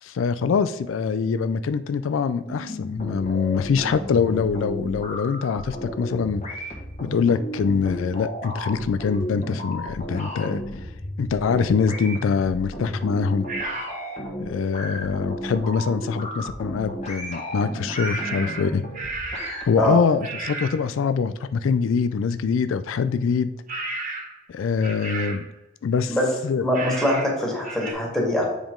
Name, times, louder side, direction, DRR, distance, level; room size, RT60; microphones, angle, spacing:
voice 1, 0.0-6.6 7.0-10.9 11.2-13.4 14.4-18.8 19.6-23.5 24.5-25.5 25.8-26.2 26.4-26.6, left 5 dB, 85° left, 13 dB, 0.4 m, -24 dB
sound 1, 2.5-19.6, equal, 35° left, 1.4 m, -34 dB
sound 2, 13.5-13.9 17.9-19.7 20.2-20.8 23.7-24.4 24.8-25.5 26.7-27.3 27.6-27.9, right 3 dB, 45° right, 1.6 m, -32 dB
voice 2, 26.6-28.4, left 1 dB, 5° left, -3 dB, 1.8 m, -23 dB
7.2 x 5.0 x 3.7 m, 0.99 s
head